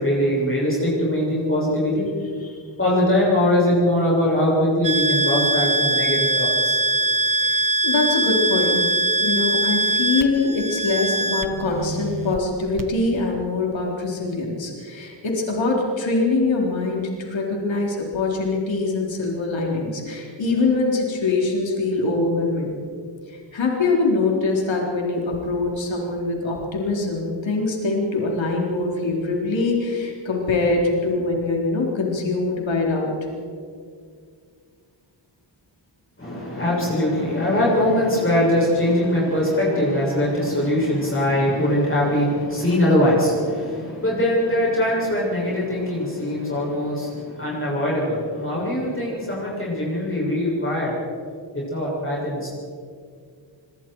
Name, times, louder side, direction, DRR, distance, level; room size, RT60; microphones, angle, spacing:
voice 1, 0.0-2.1 2.8-6.8 36.2-51.0 51.5-52.5, left 1 dB, 30° left, -5 dB, 7.2 m, -22 dB
sound 1, 4.8-12.4 12.8-12.9, right 2 dB, 45° right, 1.5 m, -22 dB
voice 2, 7.4-8.8 9.2-22.8 23.3-33.1, left 3 dB, 85° left, -1 dB, 4.1 m, -23 dB
25.5 x 22.5 x 4.8 m, 2.1 s
wide cardioid pair, 110°, 45 cm